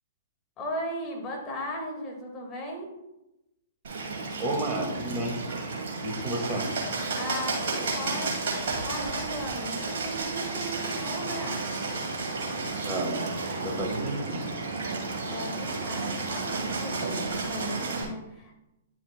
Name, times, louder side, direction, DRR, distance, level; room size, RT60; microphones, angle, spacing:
voice 1, 0.6-2.9 7.1-11.6 15.2-18.6, equal, 25° left, 0 dB, 1.9 m, -37 dB
Bird, 3.8-18.0, right 3 dB, 55° right, 2.3 m, -32 dB
voice 2, 4.4-5.4 6.0-6.7 12.8-13.2 13.6-14.5, right 1 dB, 20° right, -2 dB, 2.1 m, -31 dB
10.0 x 7.0 x 2.3 m, 0.92 s
figure-of-eight pair, 115°, 0 cm